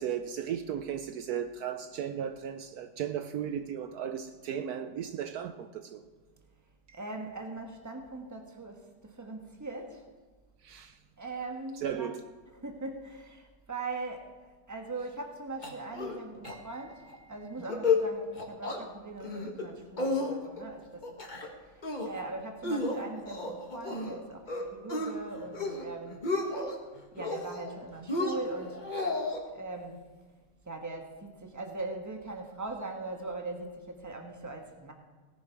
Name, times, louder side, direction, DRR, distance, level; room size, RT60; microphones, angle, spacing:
voice 1, 0.0-6.0 6.9-7.0 10.6-11.0 11.8-12.2 16.4-16.9, right 9 dB, 70° right, 9 dB, 1.1 m, -36 dB
voice 2, 6.9-10.0 11.2-12.1 12.6-21.0 21.6-26.2 27.1-28.9 29.5-30.0 30.6-34.9, right 3 dB, 10° right, 3 dB, 1.3 m, -40 dB
sound 1, 15.6-16.2 16.4-16.5 16.9-17.2 17.6-18.0 18.3-18.8 19.2-19.6 20.0-20.6 21.0-21.5 21.8-22.2 22.6-24.1 24.5-25.1 25.5-25.9 26.1-26.8 27.2-27.7 28.1-29.4, left 3 dB, 30° left, 1.6 m, -32 dB
18.0 x 10.5 x 4.6 m, 1.4 s
omnidirectional pair, 1.8 m